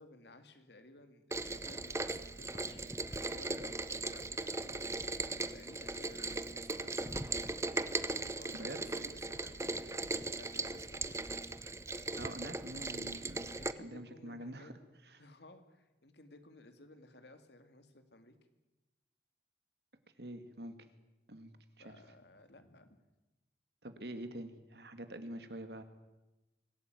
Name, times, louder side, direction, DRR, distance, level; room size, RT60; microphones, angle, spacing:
voice 1, 0.0-5.3 5.5-7.3 8.3-10.1 10.4-11.3 13.6-14.7 15.2-18.3 21.8-23.0, left 2 dB, 70° left, 8 dB, 2.6 m, -57 dB
Rain, 1.3-13.7, right 3 dB, 15° right, 0.8 m, -38 dB
voice 2, 12.2-13.5 13.8-14.7 15.1-15.2 20.2-20.8 21.3-21.5 21.8-22.0 23.8-25.8, right 1 dB, 70° right, 9 dB, 2.3 m, -45 dB
25.0 x 17.0 x 9.4 m, 1.0 s
head